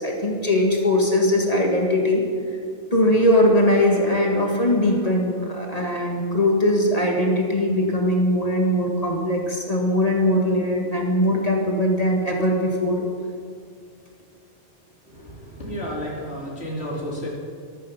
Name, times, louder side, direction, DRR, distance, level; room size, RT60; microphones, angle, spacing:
voice 1, 0.0-2.2 2.9-13.0, left 1 dB, 35° left, 0 dB, 1.8 m, -20 dB
voice 2, 15.1-17.3, equal, 60° left, -3 dB, 3.5 m, -32 dB
13.5 x 13.0 x 5.7 m, 2.3 s
omnidirectional pair, 1.2 m